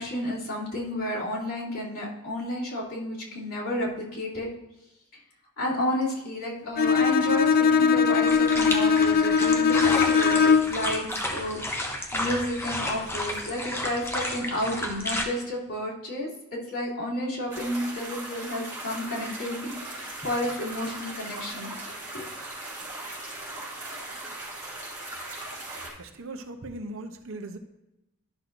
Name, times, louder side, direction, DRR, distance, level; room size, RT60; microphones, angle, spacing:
voice 1, 0.0-4.5 5.6-21.7 22.1-22.3, left 1 dB, 90° left, -7 dB, 2.9 m, -31 dB
Bowed string instrument, 6.8-10.9, left 6 dB, 45° left, 0.4 m, -21 dB
sound 1, 8.3-15.2, left 1 dB, 10° left, 0.8 m, -32 dB
sound 2, 17.5-25.9, right 2 dB, 15° right, 3.0 m, -38 dB
voice 2, 26.0-27.6, right 2 dB, 65° right, 7 dB, 0.8 m, -38 dB
12.0 x 6.0 x 2.6 m, 0.90 s
head